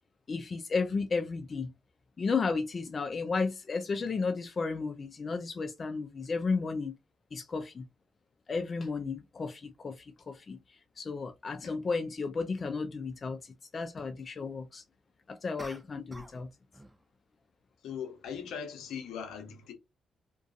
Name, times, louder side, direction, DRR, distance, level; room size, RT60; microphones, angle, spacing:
voice 1, 0.3-1.7 2.2-6.9 7.3-7.9 8.5-14.8 15.3-16.5, left 4 dB, 45° left, 0.3 m, -33 dB
sound 1, 15.6-16.5 16.7-17.1, right 1 dB, 15° right, 0.5 m, -48 dB
voice 2, 17.8-19.7, left 7 dB, 80° left, 0.7 m, -40 dB
2.3 x 2.2 x 2.5 m
supercardioid pair, 60°, 0 cm